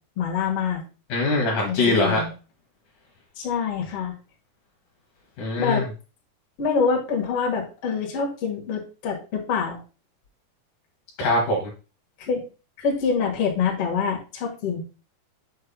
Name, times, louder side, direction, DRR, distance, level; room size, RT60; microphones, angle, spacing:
voice 1, 0.2-0.8 1.7-2.3 3.4-4.2 5.6-5.9 6.6-9.8 12.2-12.4 12.8-14.8, left 6 dB, 50° left, -1 dB, 2.1 m, -25 dB
voice 2, 1.1-2.2 5.4-5.8 11.2-11.7, left 2 dB, 65° left, -1 dB, 2.5 m, -22 dB
6.7 x 6.6 x 2.3 m, 0.33 s
omnidirectional pair, 4.4 m